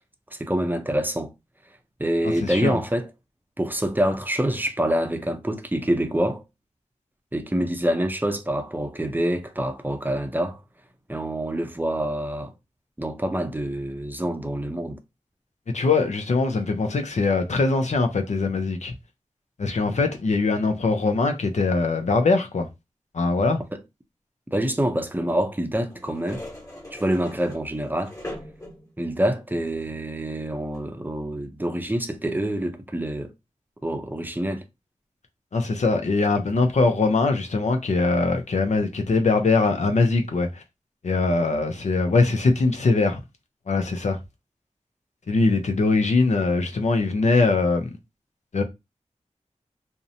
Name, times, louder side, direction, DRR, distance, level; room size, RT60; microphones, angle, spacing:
voice 1, 0.3-1.3 2.0-3.1 3.6-6.4 7.3-10.6 11.1-12.5 13.0-15.0 23.7-23.8 24.5-26.4 26.9-28.1 29.0-33.3 33.8-34.6, right 1 dB, 15° right, 0.5 m, -26 dB
voice 2, 2.4-2.8 15.7-18.9 19.6-22.7 23.1-23.6 35.5-40.5 41.0-43.2 43.7-44.2 45.3-47.9 48.5-48.6, left 3 dB, 70° left, 0.5 m, -22 dB
sound 1, 25.9-29.0 29.7-30.0 30.7-30.9, left 1 dB, 25° left, 1.2 m, -40 dB
2.6 x 2.0 x 2.6 m
cardioid pair, 45°, 13 cm